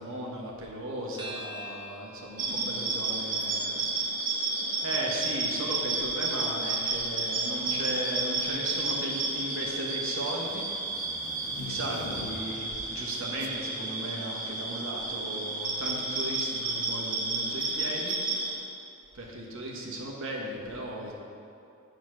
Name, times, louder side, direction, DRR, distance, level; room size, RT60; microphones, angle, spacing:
voice 1, 0.0-4.1 4.8-10.6 11.6-18.2 19.1-21.1, right 1 dB, 65° right, -2 dB, 1.3 m, -36 dB
sound 1, 1.2-5.9, equal, 20° right, 0.8 m, -47 dB
sound 2, 2.4-18.5, right 3 dB, 40° right, 1.1 m, -31 dB
sound 3, 6.4-6.7 7.7-8.1 8.5-12.8 13.4-13.6, left 4 dB, 70° left, 0.4 m, -46 dB
7.9 x 4.0 x 6.3 m, 2.6 s
head